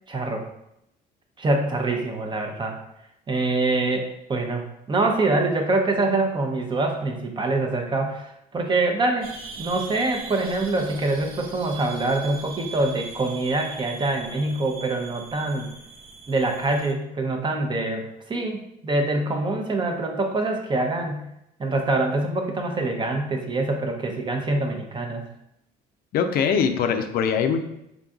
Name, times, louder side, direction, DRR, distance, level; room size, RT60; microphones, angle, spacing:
voice 1, 0.1-0.4 1.4-2.8 3.3-15.7 16.3-21.2 21.6-25.2, right 2 dB, 25° right, 2 dB, 0.6 m, -25 dB
sound 1, 9.2-16.9, right 5 dB, 60° right, 0.7 m, -40 dB
voice 2, 26.1-27.6, left 6 dB, 65° left, 7 dB, 0.5 m, -22 dB
3.8 x 3.7 x 2.3 m, 0.82 s
cardioid pair, 110°, 17 cm